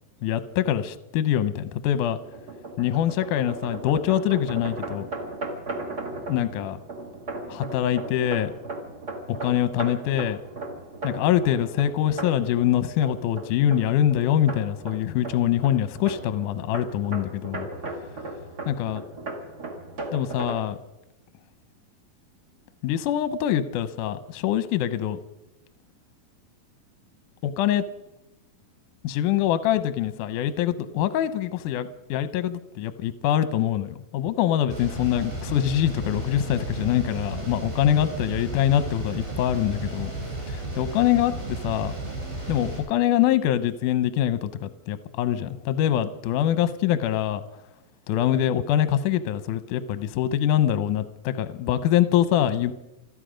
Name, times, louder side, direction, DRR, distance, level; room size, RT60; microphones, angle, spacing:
voice 1, 0.2-2.2 2.8-5.1 6.3-6.8 7.5-8.5 9.3-10.4 11.0-17.7 18.7-19.0 20.1-20.8 22.8-25.2 27.4-27.8 29.0-40.1 40.5-42.0 42.5-47.4 48.1-52.7, left 11 dB, 70° left, 12 dB, 2.1 m, -24 dB
sound 1, 2.2-20.6, right 2 dB, 35° right, 2.0 m, -37 dB
sound 2, 34.7-42.8, right 2 dB, 70° right, 8.3 m, -33 dB
28.0 x 9.9 x 5.1 m, 0.94 s
omnidirectional pair, 4.4 m